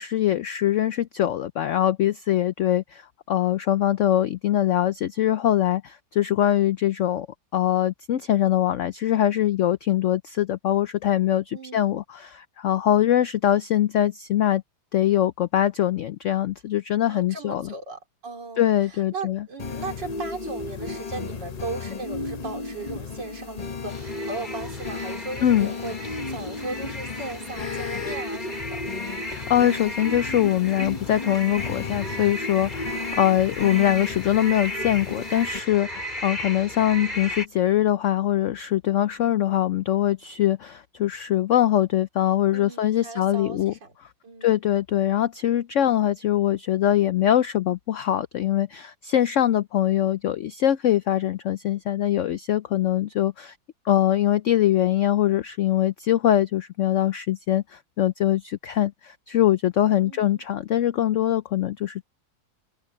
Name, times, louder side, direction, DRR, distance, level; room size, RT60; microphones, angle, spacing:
voice 1, 0.0-3.0 3.3-7.3 7.5-14.6 14.9-17.7 18.6-19.4 25.4-25.7 29.3-43.7 44.4-53.5 53.9-62.0, left 12 dB, 85° left, 0.6 m, -23 dB
voice 2, 11.5-12.0 17.1-28.8 42.5-43.9 44.2-44.5 60.0-60.4, right 3 dB, 75° right, 3.7 m, -37 dB
sound 1, 19.6-35.6, left 6 dB, 45° left, 0.5 m, -36 dB
sound 2, 20.0-36.0, left 1 dB, 65° left, 7.1 m, -38 dB
sound 3, 23.9-37.5, left 1 dB, 25° left, 4.9 m, -35 dB
omnidirectional pair, 1.9 m